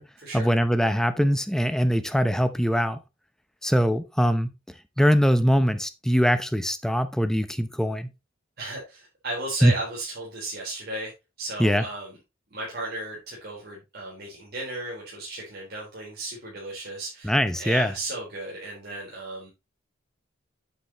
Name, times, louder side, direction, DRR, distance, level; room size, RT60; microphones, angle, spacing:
voice 1, 0.3-3.0 3.6-4.5 5.0-8.1 9.6-9.7 11.6-11.8 17.2-17.9, equal, 5° left, 0.7 m, -22 dB
voice 2, 8.6-11.1 11.4-12.1 12.5-17.3 17.6-19.5, right 2 dB, 55° right, 4.2 m, -35 dB
9.0 x 7.9 x 3.0 m
head